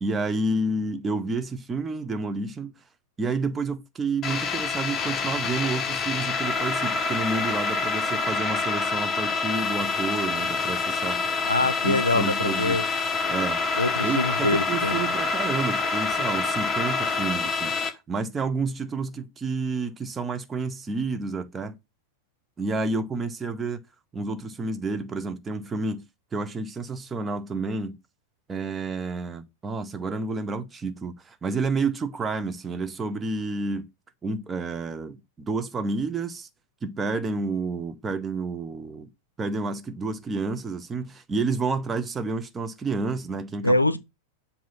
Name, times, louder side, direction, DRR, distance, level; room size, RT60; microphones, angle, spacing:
voice 1, 0.0-2.7 3.2-11.2 11.8-12.8 13.3-13.6 14.0-21.8 22.6-23.8 24.1-26.1 26.3-28.0 28.5-33.9 34.2-36.5 36.8-39.1 39.4-43.8, right 3 dB, 20° right, 0.7 m, -30 dB
sound 1, 4.2-17.9, left 4 dB, 25° left, 1.0 m, -27 dB
voice 2, 11.4-12.8 13.8-15.1 43.6-44.0, left 2 dB, 85° left, 0.5 m, -24 dB
7.5 x 2.8 x 5.6 m
figure-of-eight pair, 90°, 0 cm